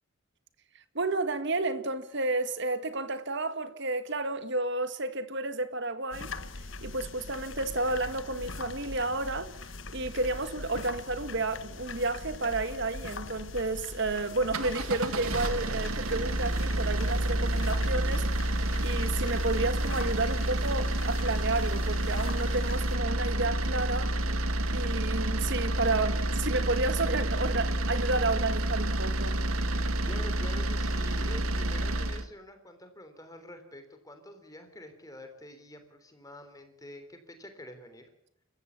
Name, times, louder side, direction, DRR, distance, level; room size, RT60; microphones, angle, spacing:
voice 1, 1.0-6.3 6.8-9.5 9.9-18.3 18.8-24.2 24.7-29.4, right 2 dB, 55° right, 1.8 m, -31 dB
sound 1, 6.1-23.0, left 3 dB, 60° left, 1.4 m, -42 dB
sound 2, 14.4-32.3, right 1 dB, 85° right, 1.7 m, -29 dB
voice 2, 30.0-38.1, left 1 dB, 15° left, 3.5 m, -47 dB
29.5 x 15.0 x 7.3 m
head